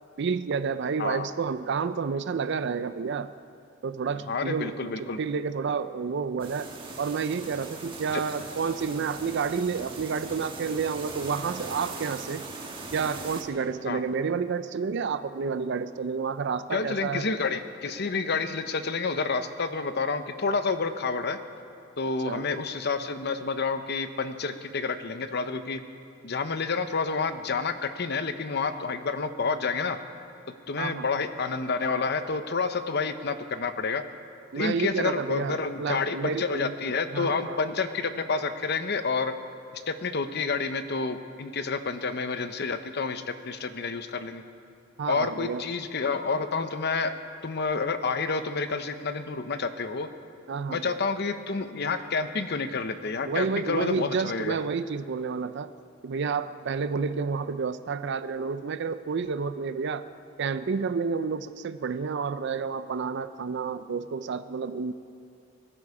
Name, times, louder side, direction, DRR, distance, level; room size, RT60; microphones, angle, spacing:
voice 1, 0.2-3.3 3.8-6.7 7.0-12.4 12.9-17.3 22.2-22.4 30.8-31.1 34.5-36.7 37.1-37.6 45.0-45.6 50.5-50.9 53.3-55.7 56.0-60.1 60.4-64.9, right 5 dB, 60° right, 12 dB, 0.4 m, -30 dB
voice 2, 4.3-5.2 8.1-8.2 13.9-14.0 16.7-21.4 22.0-25.8 26.2-30.0 30.7-34.0 34.5-39.3 39.7-44.4 45.1-47.1 47.4-50.1 50.7-54.6, left 4 dB, 55° left, 10 dB, 0.8 m, -29 dB
sound 1, 6.4-13.4, right 3 dB, 25° right, 1.5 m, -40 dB
22.0 x 12.5 x 4.9 m, 2.6 s
head